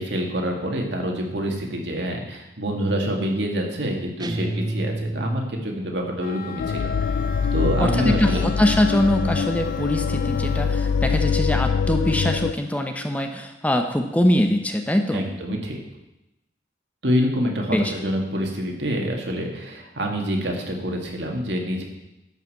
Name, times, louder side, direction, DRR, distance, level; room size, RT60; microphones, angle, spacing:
voice 1, 0.0-7.2 7.5-8.4 15.1-15.8 17.0-21.8, equal, 70° right, 1 dB, 2.2 m, -26 dB
sound 1, 4.2-5.9, right 2 dB, 25° right, 0.6 m, -30 dB
Wind instrument woodwind instrument, 6.2-10.8, left 4 dB, 50° left, 0.8 m, -38 dB
sound 2, 6.6-12.5, left 6 dB, 80° left, 0.3 m, -24 dB
voice 2, 7.8-15.3 17.7-17.9, left 1 dB, 10° left, 5 dB, 0.8 m, -23 dB
12.0 x 5.7 x 7.8 m, 0.93 s
head